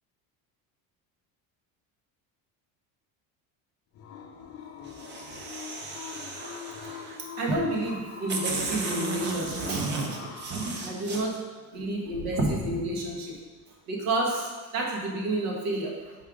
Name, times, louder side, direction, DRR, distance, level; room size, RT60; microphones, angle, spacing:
sound 1, 3.9-10.8, left 6 dB, 40° left, 0.5 m, -43 dB
sound 2, 4.9-7.2 7.9-8.0 8.3-11.2, right 4 dB, 30° right, 0.5 m, -34 dB
voice 1, 6.9-10.3 10.8-11.4 11.7-13.3 13.9-16.2, right 1 dB, 90° right, -1 dB, 1.3 m, -30 dB
5.5 x 3.6 x 4.8 m, 1.3 s
cardioid pair, 170°, 38 cm